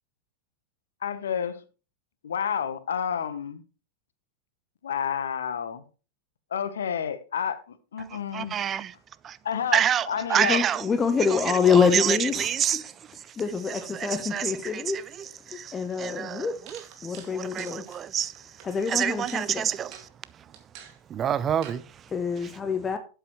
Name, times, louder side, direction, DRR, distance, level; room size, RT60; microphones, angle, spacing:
voice 1, 1.0-1.6 2.2-3.6 4.8-5.8 6.5-7.6 7.9-8.6 9.4-9.8 10.1-10.6, left 8 dB, 65° left, 1.0 m, -29 dB
voice 2, 8.3-8.9 9.2-9.4 9.7-10.9 11.2-13.0 13.7-18.5 18.9-20.1 20.4-20.5 21.1-22.1 22.4-22.5, right 9 dB, 25° right, 0.5 m, -28 dB
voice 3, 10.4-12.5 13.4-15.0 15.5-16.6 17.0-17.8 18.6-19.7 22.1-23.0, left 6 dB, 20° left, 0.8 m, -26 dB
sound 1, 15.9-16.0 16.7-18.7 19.3-19.5 19.9-20.1 20.5-21.0 21.6-21.8, right 8 dB, 45° right, 2.2 m, -46 dB
12.5 x 8.0 x 3.1 m
figure-of-eight pair, 90°, 0 cm